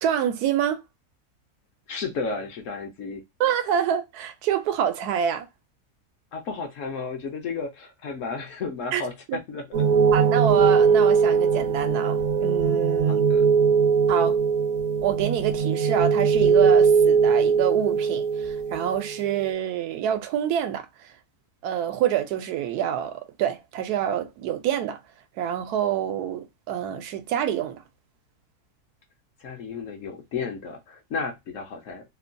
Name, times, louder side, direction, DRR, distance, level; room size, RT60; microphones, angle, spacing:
voice 1, 0.0-0.8 3.4-5.5 8.9-9.0 9.3-9.4 10.1-13.3 14.1-14.3 15.0-20.9 21.6-25.0 25.4-27.8, right 10 dB, 85° right, 1.1 m, -26 dB
voice 2, 1.9-3.2 6.3-10.0 13.1-13.5 29.4-32.0, left 4 dB, 65° left, 0.9 m, -33 dB
sound 1, 9.7-19.4, right 6 dB, 60° right, 0.8 m, -20 dB
2.9 x 2.2 x 2.5 m
omnidirectional pair, 1.6 m